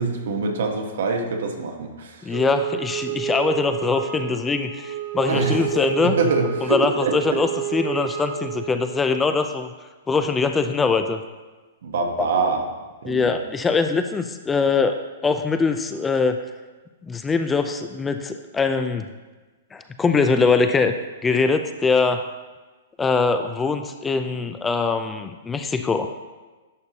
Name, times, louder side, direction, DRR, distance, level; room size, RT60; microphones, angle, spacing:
voice 1, 0.0-2.4 5.3-7.4 11.8-12.7 13.0-13.4, right 4 dB, 70° right, 3 dB, 1.1 m, -25 dB
voice 2, 2.2-6.2 6.7-9.7 10.1-11.2 13.1-15.0 15.2-16.4 17.1-19.1 19.7-20.9 21.2-22.2 23.0-26.1, left 4 dB, 10° left, 7 dB, 0.3 m, -22 dB
Wind instrument woodwind instrument, 2.3-9.1, right 12 dB, 45° right, 0.7 m, -30 dB
11.0 x 5.3 x 2.8 m, 1.3 s
hypercardioid pair, 145°, 0 cm